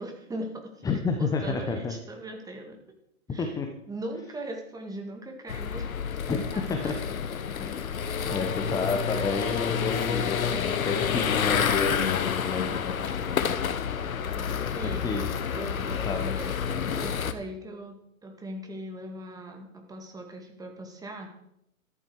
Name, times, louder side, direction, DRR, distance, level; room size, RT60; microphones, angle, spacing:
voice 1, 0.0-0.9 1.2-2.8 3.3-3.6 3.9-6.0 6.5-6.9 8.1-8.4 13.1-13.3 14.3-15.0 15.5-18.0 18.2-21.3, right 1 dB, 10° right, 2 dB, 2.1 m, -40 dB
voice 2, 0.8-1.9 3.3-3.7 6.3-7.0 7.6-7.8 8.3-12.9 15.0-15.3 16.0-16.3, left 4 dB, 10° left, 5 dB, 0.9 m, -30 dB
sound 1, 5.5-17.3, left 7 dB, 80° left, 1.3 m, -29 dB
13.5 x 11.0 x 4.7 m, 0.78 s
hypercardioid pair, 130°, 42 cm